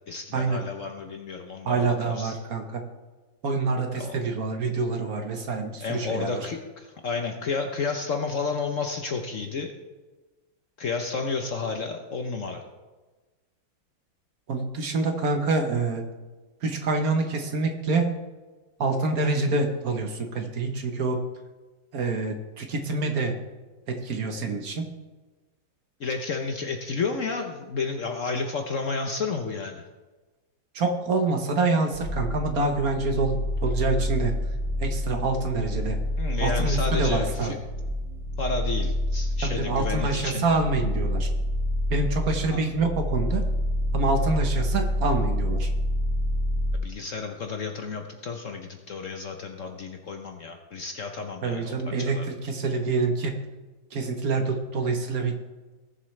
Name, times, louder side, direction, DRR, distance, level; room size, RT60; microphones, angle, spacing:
voice 1, 0.1-2.3 3.9-4.2 5.8-9.7 10.8-12.6 26.0-29.8 36.2-37.6 38.4-40.6 42.5-42.6 46.7-52.3, left 4 dB, 55° left, 4 dB, 1.0 m, -31 dB
voice 2, 1.6-2.8 3.4-6.5 14.5-16.0 16.6-18.1 18.8-21.2 21.9-23.4 23.9-24.9 30.7-34.3 34.8-36.0 36.4-37.5 39.4-41.3 41.9-43.4 43.9-45.7 51.4-53.3 53.9-55.4, right 3 dB, 55° right, 5 dB, 1.4 m, -26 dB
sound 1, 31.9-46.8, equal, 85° right, 2.7 m, -28 dB
18.5 x 7.4 x 3.2 m, 1.2 s
omnidirectional pair, 2.0 m